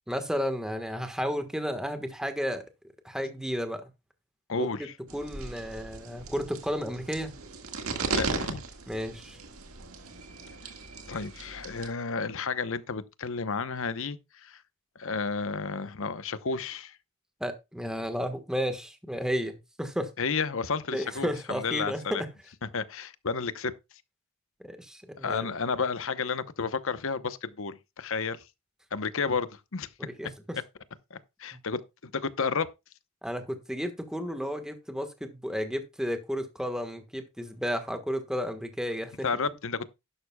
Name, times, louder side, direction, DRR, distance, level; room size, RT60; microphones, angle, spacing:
voice 1, 0.1-2.6 3.0-3.8 4.5-4.7 5.1-7.3 8.9-9.4 17.4-20.1 20.9-22.0 24.6-25.5 30.0-30.6 31.5-31.6 33.2-39.3, equal, 5° right, 1.4 m, -33 dB
voice 2, 4.5-4.9 8.1-8.6 11.1-14.6 15.0-17.0 20.2-22.2 22.6-23.7 25.2-28.4 28.9-29.9 31.1-32.7 39.2-39.9, left 5 dB, 65° left, 0.9 m, -32 dB
sound 1, 5.1-11.9, right 3 dB, 85° right, 1.8 m, -37 dB
12.0 x 11.0 x 2.3 m
head